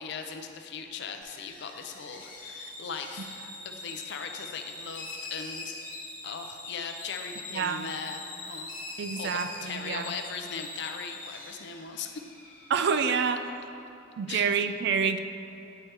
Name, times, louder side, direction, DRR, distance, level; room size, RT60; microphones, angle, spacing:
voice 1, 0.0-5.8 6.2-8.7 9.2-12.2 14.3-14.5, left 5 dB, 60° left, 5 dB, 0.5 m, -39 dB
sound 1, 1.2-13.5, left 2 dB, 45° left, 1.4 m, -43 dB
voice 2, 7.5-7.9 9.0-10.1 12.7-13.4 14.2-15.2, right 6 dB, 60° right, 9 dB, 0.3 m, -27 dB
9.6 x 3.3 x 4.4 m, 2.9 s
head